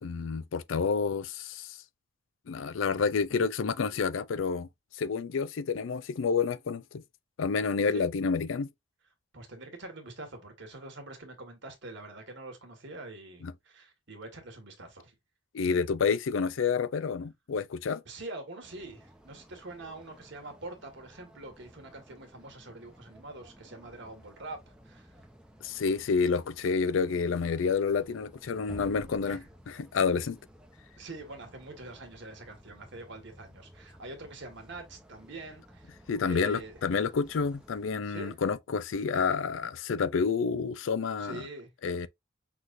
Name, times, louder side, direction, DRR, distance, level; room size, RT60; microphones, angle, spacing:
voice 1, 0.0-1.8 2.5-4.7 5.0-7.0 7.4-8.7 13.4-13.5 15.5-18.0 25.6-30.4 36.1-41.4 41.8-42.1, left 5 dB, 80° left, 0.4 m, -29 dB
voice 2, 9.3-15.1 18.0-25.2 29.2-29.5 31.0-35.9 36.2-36.8 38.0-38.3 41.2-41.7, right 2 dB, 65° right, 1.6 m, -44 dB
sound 1, 18.6-37.9, equal, 5° right, 0.8 m, -54 dB
6.0 x 3.2 x 2.5 m
head